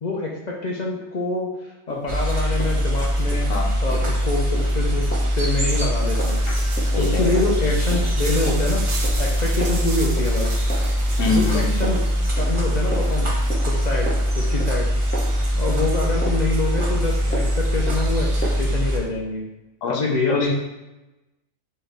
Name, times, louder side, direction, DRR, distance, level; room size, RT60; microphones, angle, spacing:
voice 1, 0.0-3.5 3.8-5.1 5.3-6.4 7.0-8.9 9.2-10.5 11.3-12.0 12.4-13.4 13.7-14.9 15.6-19.4 19.9-20.5, left 3 dB, 50° left, -1 dB, 0.5 m, -26 dB
sound 1, 1.9-18.6, right 1 dB, 10° left, 0.6 m, -37 dB
sound 2, 2.1-19.0, equal, 35° right, 0.5 m, -22 dB
sound 3, 5.9-15.8, right 3 dB, 70° right, 1.2 m, -37 dB
voice 2, 6.5-7.3 11.2-11.7 19.8-20.0 20.3-20.5, left 4 dB, 85° left, 0 dB, 1.1 m, -25 dB
4.4 x 3.4 x 3.3 m, 1.0 s
omnidirectional pair, 1.3 m